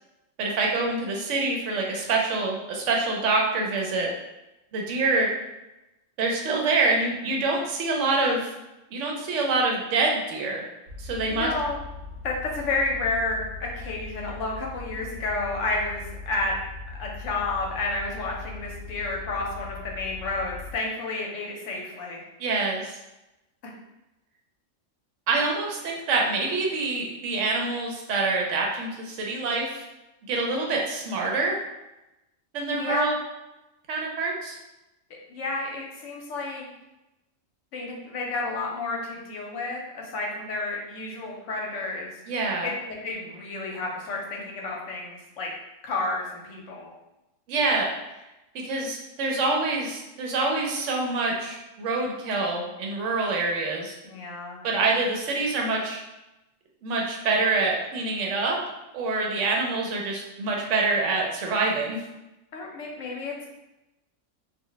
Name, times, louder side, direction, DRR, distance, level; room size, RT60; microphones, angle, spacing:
voice 1, 0.4-4.1 4.7-5.3 6.2-8.5 8.9-10.6 11.0-11.5 22.4-23.0 25.3-29.8 30.3-31.6 32.5-33.2 33.9-34.6 42.3-42.7 47.5-47.9 48.6-54.0 54.6-56.0 56.8-58.6 58.9-62.0, right 3 dB, 70° right, 0 dB, 0.9 m, -26 dB
sound 1, 10.9-20.8, left 4 dB, 40° right, 0.8 m, -40 dB
voice 2, 11.3-11.8 12.2-16.5 16.9-22.2 32.7-33.0 35.3-36.7 37.7-42.1 42.6-45.5 45.8-46.9 54.0-54.6 62.5-63.5, left 2 dB, 70° left, -1 dB, 1.0 m, -31 dB
2.4 x 2.1 x 3.8 m, 0.98 s
omnidirectional pair, 1.3 m